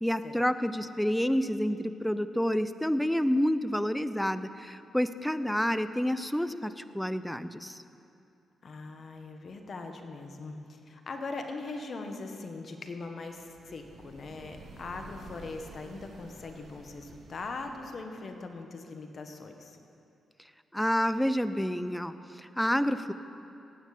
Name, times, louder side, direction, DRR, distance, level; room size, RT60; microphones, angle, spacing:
voice 1, 0.0-7.8 20.7-23.1, equal, 5° left, 13 dB, 0.6 m, -29 dB
voice 2, 8.6-19.8, left 3 dB, 55° left, 5 dB, 1.3 m, -41 dB
sound 1, 13.3-18.0, right 2 dB, 80° right, 1.9 m, -51 dB
16.5 x 9.2 x 5.0 m, 2.6 s
supercardioid pair, 50°, 0 cm